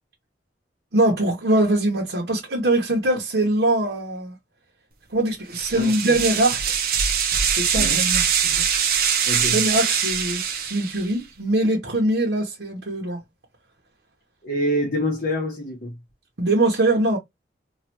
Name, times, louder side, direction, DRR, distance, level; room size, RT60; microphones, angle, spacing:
voice 1, 0.9-4.4 5.1-6.6 7.5-8.6 9.5-13.2 16.4-17.2, right 1 dB, 75° right, 0.9 m, -22 dB
sound 1, 5.5-11.1, right 7 dB, 55° right, 0.6 m, -23 dB
voice 2, 5.7-6.1 7.7-8.0 9.3-9.6 14.4-16.0, equal, 60° left, 1.1 m, -26 dB
3.1 x 2.4 x 2.8 m
head